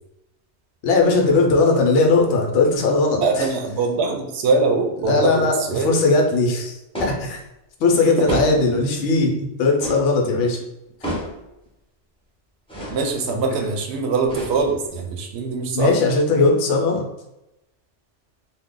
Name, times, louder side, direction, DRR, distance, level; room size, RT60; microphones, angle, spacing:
voice 1, 0.8-3.5 5.0-7.4 7.8-10.6 15.7-17.1, left 3 dB, 80° left, 1 dB, 1.0 m, -19 dB
voice 2, 3.2-5.9 8.2-8.3 12.9-15.9, right 3 dB, 70° right, 3 dB, 0.8 m, -22 dB
sound 1, 6.9-7.3 8.3-8.8 9.8-10.1 11.0-11.4 12.7-13.1 14.2-14.9, equal, 5° left, 0.6 m, -29 dB
2.8 x 2.1 x 3.6 m, 0.89 s
omnidirectional pair, 1.2 m